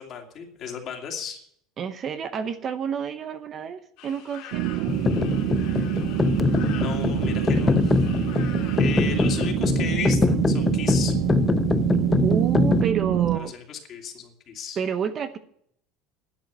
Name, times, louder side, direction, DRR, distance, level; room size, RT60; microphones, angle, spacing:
voice 1, 0.0-1.5 6.7-8.0 8.8-11.1 13.3-14.8, left 7 dB, 35° left, 2 dB, 2.6 m, -35 dB
voice 2, 1.8-4.9 12.2-13.5 14.8-15.4, right 7 dB, 30° right, 10 dB, 0.8 m, -29 dB
sound 1, 4.0-9.5, left 10 dB, 60° left, 2.8 m, -44 dB
sound 2, 4.5-13.4, right 15 dB, 75° right, 0.5 m, -26 dB
sound 3, 4.9-12.8, left 4 dB, 15° left, 0.5 m, -23 dB
11.5 x 8.0 x 9.3 m, 0.66 s
cardioid pair, 155°, 0 cm